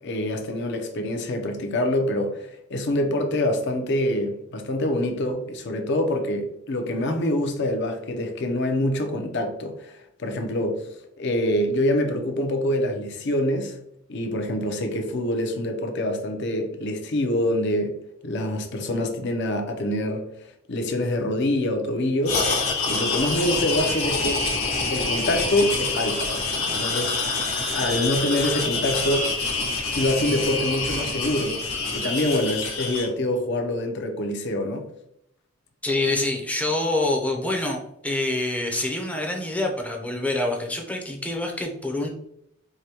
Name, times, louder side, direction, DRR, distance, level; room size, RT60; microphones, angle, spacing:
voice 1, 0.0-10.9 11.2-13.8 14.1-20.3 20.7-22.4 22.9-24.5 24.9-29.3 29.9-31.6 31.9-34.9, left 1 dB, 55° left, 4 dB, 0.6 m, -25 dB
sound 1, 22.2-33.1, left 3 dB, 85° left, 1.2 m, -26 dB
voice 2, 35.8-42.1, left 2 dB, 5° left, 0 dB, 0.5 m, -26 dB
4.7 x 2.2 x 2.8 m, 0.76 s
head